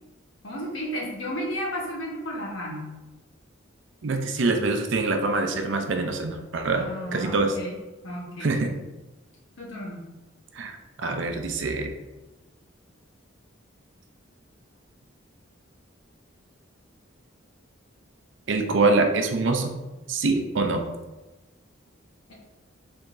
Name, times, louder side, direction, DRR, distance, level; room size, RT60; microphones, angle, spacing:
voice 1, 0.4-2.9 6.7-7.7 8.0-8.6 9.6-10.1, equal, 75° left, -3 dB, 1.2 m, -33 dB
voice 2, 4.0-6.8 7.1-7.6 8.4-8.7 10.5-11.9 18.5-19.7 20.1-20.9, right 3 dB, 65° right, 5 dB, 0.5 m, -24 dB
4.6 x 3.5 x 2.6 m, 1.1 s
head